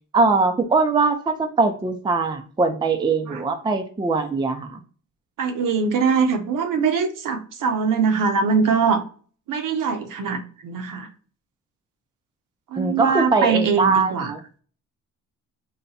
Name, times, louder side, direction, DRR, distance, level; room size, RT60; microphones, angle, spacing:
voice 1, 0.1-4.8 12.8-14.4, right 3 dB, 15° right, 6 dB, 0.5 m, -21 dB
voice 2, 5.4-9.0 9.5-11.1 12.7-14.3, right 5 dB, 65° right, 6 dB, 0.8 m, -22 dB
4.0 x 2.2 x 4.1 m, 0.41 s
cardioid pair, 90°, 35 cm